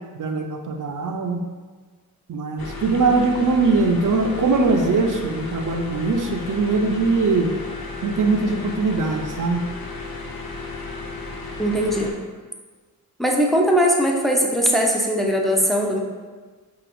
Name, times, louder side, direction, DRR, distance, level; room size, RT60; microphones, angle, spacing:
voice 1, 0.2-1.4 2.3-7.5 8.0-9.7, right 3 dB, 60° right, 4 dB, 0.5 m, -21 dB
sound 1, 2.6-12.1, left 3 dB, 75° left, 0.6 m, -34 dB
voice 2, 11.6-12.1 13.2-16.0, equal, ahead, -1 dB, 0.5 m, -20 dB
5.0 x 2.6 x 2.5 m, 1.4 s
wide cardioid pair, 65°, 37 cm